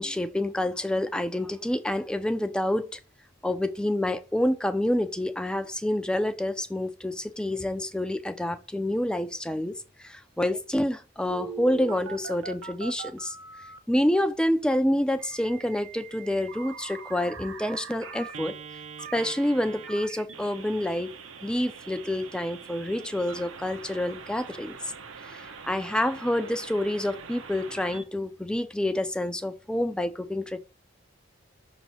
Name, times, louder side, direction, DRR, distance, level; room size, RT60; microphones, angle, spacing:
voice 1, 0.0-3.0 3.4-13.4 13.9-18.6 19.1-21.1 21.4-24.9 25.2-30.6, left 1 dB, 5° left, 0.3 m, -28 dB
Telephone, 11.3-13.8 15.2-28.0, right 5 dB, 85° right, 0.8 m, -42 dB
6.1 x 3.0 x 5.5 m
head